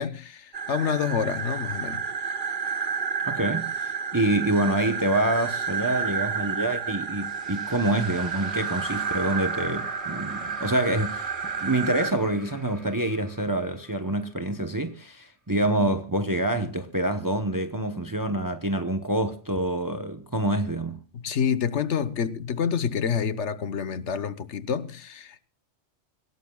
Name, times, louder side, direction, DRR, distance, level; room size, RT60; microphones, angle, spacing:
voice 1, 0.0-2.0 15.8-15.9 21.1-25.5, left 7 dB, 85° left, 1.3 m, -28 dB
sound 1, 0.5-12.1, right 6 dB, 50° right, 1.0 m, -31 dB
voice 2, 3.2-11.3 11.6-21.0, right 1 dB, 20° right, 0.9 m, -26 dB
sound 2, 7.3-14.6, right 2 dB, 70° right, 3.4 m, -41 dB
25.5 x 16.5 x 2.3 m
omnidirectional pair, 1.2 m